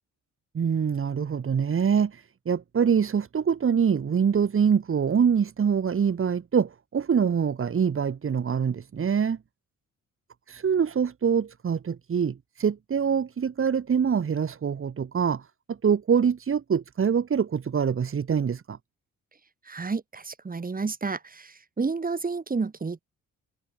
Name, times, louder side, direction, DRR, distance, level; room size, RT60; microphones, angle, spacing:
voice 1, 0.5-9.4 10.5-18.8, right 7 dB, 45° right, 3.8 m, -25 dB
voice 2, 19.7-23.0, right 4 dB, 30° right, 4.9 m, -30 dB
cardioid pair, 90°, 30 cm